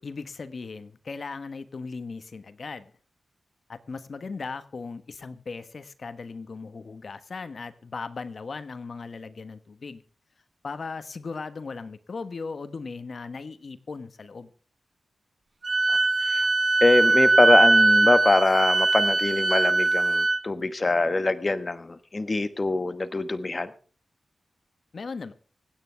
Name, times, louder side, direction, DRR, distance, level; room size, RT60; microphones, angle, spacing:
voice 1, 0.0-2.9 3.7-10.0 10.6-14.5 24.9-25.3, left 4 dB, 65° left, 12 dB, 1.2 m, -37 dB
Wind instrument woodwind instrument, 15.6-20.4, right 3 dB, 45° right, 0.7 m, -21 dB
voice 2, 15.9-16.5 16.8-23.7, left 2 dB, 40° left, 12 dB, 1.1 m, -24 dB
25.0 x 9.6 x 3.4 m, 0.40 s
cardioid pair, 50°, 0 cm